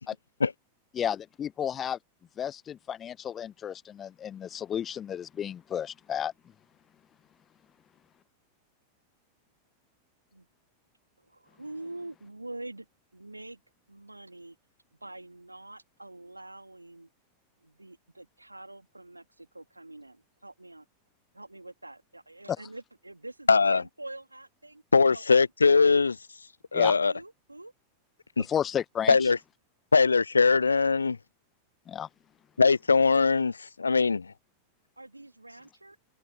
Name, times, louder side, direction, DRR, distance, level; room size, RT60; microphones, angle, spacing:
voice 1, 0.9-2.0 2.4-6.3 26.7-26.9 28.5-29.3 31.9-32.1, left 9 dB, 25° left, 1.0 m, -32 dB
voice 2, 11.2-12.9 13.1-13.6 13.9-14.6 14.9-17.1 17.6-20.9 21.3-24.8 25.1-25.5 26.8-27.7 35.0-36.0, right 2 dB, 85° right, 2.5 m, -45 dB
voice 3, 23.5-23.8 24.9-26.2 26.7-27.1 28.4-28.5 29.1-29.4 29.9-31.2 32.6-34.3, left 4 dB, 75° left, 0.7 m, -21 dB
open air
figure-of-eight pair, 90°, 0 cm